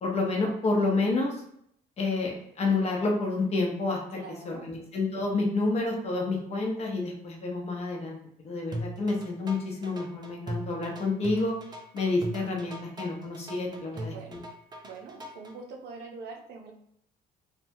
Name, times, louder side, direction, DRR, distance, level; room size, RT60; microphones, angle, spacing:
voice 1, 0.0-1.4 2.0-4.0 4.5-8.2 8.4-11.5 11.9-14.4, left 3 dB, 40° left, 0 dB, 0.7 m, -29 dB
voice 2, 4.1-4.8 13.9-14.5 14.8-16.7, right 4 dB, 75° right, 2 dB, 0.6 m, -44 dB
sound 1, 8.7-15.5, right 1 dB, 25° right, 0.4 m, -39 dB
2.7 x 2.2 x 2.6 m, 0.70 s
cardioid pair, 110°, 17 cm